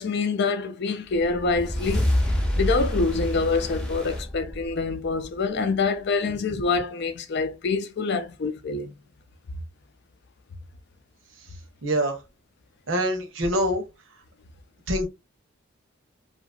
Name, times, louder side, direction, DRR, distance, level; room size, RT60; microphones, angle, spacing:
voice 1, 0.0-2.1 2.5-8.9, left 4 dB, 60° left, 0.5 m, -26 dB
sound 1, 1.1-5.7, left 1 dB, 5° left, 0.7 m, -27 dB
voice 2, 11.8-12.2 12.9-13.8 14.9-15.1, equal, 80° right, 0.8 m, -24 dB
2.8 x 2.5 x 2.3 m
head